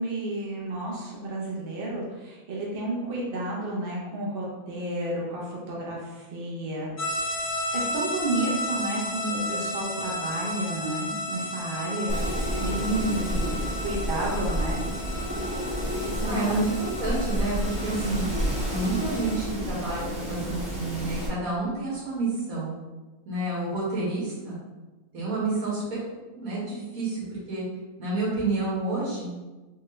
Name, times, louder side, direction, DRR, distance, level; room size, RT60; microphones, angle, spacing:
voice 1, 0.0-7.5 7.7-14.8 16.1-16.5 17.8-18.2, right 1 dB, 45° right, -3 dB, 0.9 m, -31 dB
sound 1, 7.0-19.4, left 1 dB, 50° left, 0.6 m, -34 dB
Wind, 12.1-21.3, equal, 5° right, 0.8 m, -30 dB
voice 2, 16.3-18.3 18.7-22.7 23.3-24.6 25.1-26.0 26.4-27.6 28.0-29.3, right 2 dB, 75° right, -7 dB, 1.9 m, -29 dB
4.3 x 2.8 x 3.1 m, 1.2 s
omnidirectional pair, 1.5 m